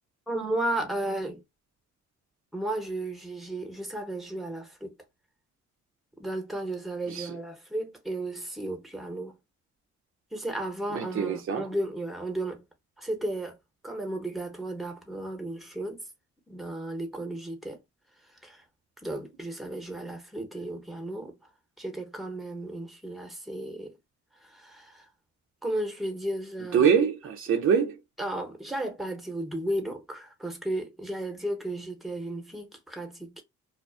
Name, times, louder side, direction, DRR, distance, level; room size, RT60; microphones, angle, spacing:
voice 1, 0.3-1.4 2.5-5.0 6.2-9.4 10.3-12.6 13.0-13.6 13.8-16.0 16.5-17.8 18.4-18.6 19.0-21.4 21.8-23.9 24.4-25.1 25.6-26.9 28.2-33.4, right 1 dB, ahead, 1.0 m, -34 dB
voice 2, 10.9-11.7 26.7-28.0, right 7 dB, 45° right, 0.5 m, -24 dB
2.4 x 2.3 x 2.3 m
cardioid pair, 90°, 30 cm